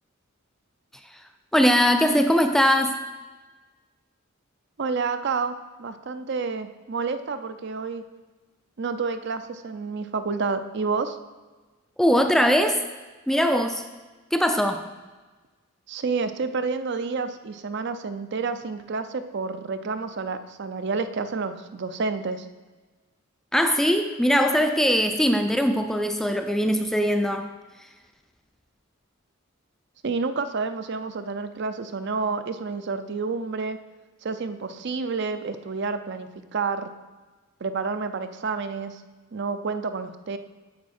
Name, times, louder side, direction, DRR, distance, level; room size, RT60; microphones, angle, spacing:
voice 1, 1.5-3.0 12.0-12.8 13.3-13.8 14.3-14.8 23.5-27.5, equal, ahead, 6 dB, 0.4 m, -21 dB
voice 2, 4.8-8.0 8.8-11.2 15.9-22.5 30.0-33.8 34.2-36.9 37.6-39.0 39.3-40.4, right 4 dB, 55° right, 10 dB, 0.5 m, -29 dB
9.5 x 7.1 x 4.3 m, 1.3 s
head